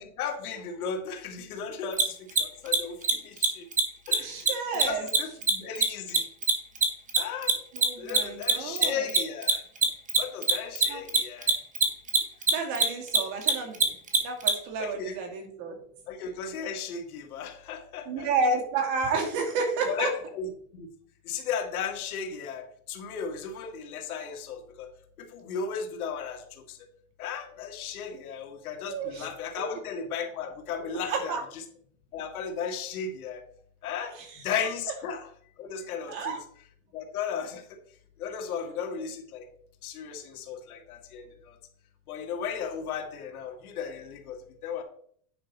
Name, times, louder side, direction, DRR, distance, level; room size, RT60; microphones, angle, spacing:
voice 1, 0.0-3.7 4.1-4.5 4.8-6.2 7.2-7.5 8.0-9.6 10.2-11.5 14.8-15.2 16.1-18.3 19.8-20.9 21.2-24.9 25.2-26.8 27.2-31.6 32.1-33.4 33.8-34.2 34.4-35.3 35.6-36.4 36.9-37.8 38.2-39.5 39.8-41.6 42.1-44.8, left 6 dB, 85° left, 4 dB, 2.1 m, -35 dB
Mechanisms, 1.9-2.0 2.3-2.4 2.7-2.8 3.0-3.1 3.4-3.5 3.7-3.8 4.1-4.2 4.5-7.2 7.4-14.5, right 5 dB, 20° right, 1.3 m, -22 dB
voice 2, 4.2-5.0 7.7-9.1 10.9-11.0 12.5-13.8 14.2-15.8 18.1-20.1 28.9-29.3 31.1-31.4 34.2-34.3 36.1-36.4, right 4 dB, 50° right, 2 dB, 2.6 m, -30 dB
9.3 x 5.5 x 4.3 m, 0.62 s
supercardioid pair, 135°, 43 cm